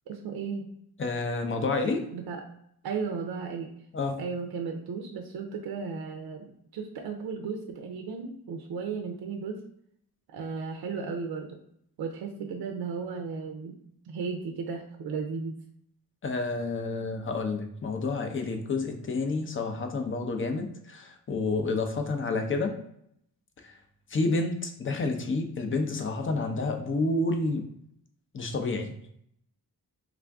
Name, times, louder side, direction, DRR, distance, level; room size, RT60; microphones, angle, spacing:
voice 1, 0.1-0.7 2.1-2.4 2.8-3.7 4.2-6.5 6.7-9.6 10.3-11.5 12.0-13.7 14.1-15.6, right 5 dB, 80° right, 3 dB, 0.5 m, -35 dB
voice 2, 1.0-2.0 3.9-4.2 16.2-22.7 23.6-23.7 24.1-27.6 28.3-28.9, left 3 dB, 35° left, 5 dB, 0.5 m, -29 dB
3.4 x 2.5 x 3.4 m, 0.72 s
wide cardioid pair, 115°, 37 cm